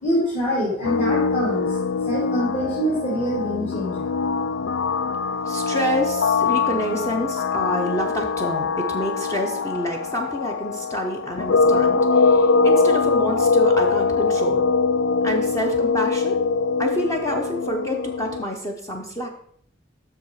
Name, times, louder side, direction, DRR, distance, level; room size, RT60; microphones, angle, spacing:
voice 1, 0.0-4.1, equal, 40° left, -9 dB, 3.0 m, -25 dB
sound 1, 0.8-18.4, left 4 dB, 75° left, 0.4 m, -22 dB
voice 2, 5.4-14.7 15.2-16.4 16.8-19.3, equal, 15° left, 2 dB, 0.8 m, -28 dB
7.8 x 6.4 x 4.7 m, 0.66 s
head